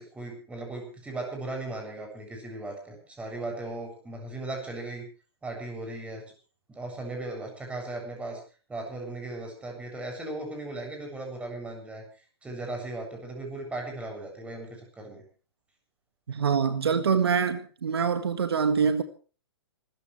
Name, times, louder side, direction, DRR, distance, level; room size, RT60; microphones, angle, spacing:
voice 1, 0.0-5.1 5.4-6.2 6.7-8.4 8.7-12.0 12.4-15.2, right 2 dB, 10° right, 7.6 m, -37 dB
voice 2, 16.3-19.0, right 6 dB, 70° right, 1.8 m, -25 dB
26.5 x 14.0 x 3.4 m
figure-of-eight pair, 120°, 14 cm